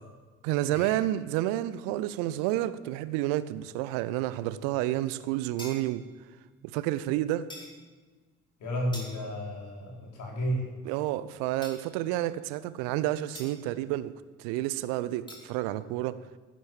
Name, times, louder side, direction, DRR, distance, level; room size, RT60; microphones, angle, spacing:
voice 1, 0.4-6.0 6.6-7.5 10.8-14.1 14.4-16.2, right 14 dB, 65° right, 0.8 m, -30 dB
sound 1, 5.6-6.2 7.5-7.8 8.9-9.5 11.6-12.1 13.3-13.7 15.3-15.5, equal, 10° left, 5.7 m, -45 dB
voice 2, 8.6-10.7, equal, 55° left, 4.6 m, -32 dB
15.0 x 12.5 x 7.5 m
figure-of-eight pair, 50°, 37 cm